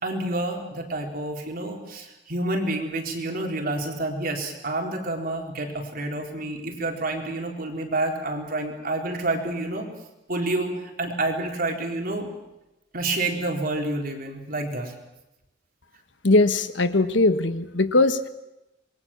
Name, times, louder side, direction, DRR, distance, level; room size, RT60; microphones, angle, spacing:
voice 1, 0.0-9.9 10.3-12.3 12.9-14.9, right 2 dB, 50° right, 2 dB, 4.1 m, -28 dB
voice 2, 16.2-18.3, left 2 dB, 85° left, 11 dB, 1.4 m, -20 dB
26.5 x 21.5 x 7.3 m, 0.93 s
head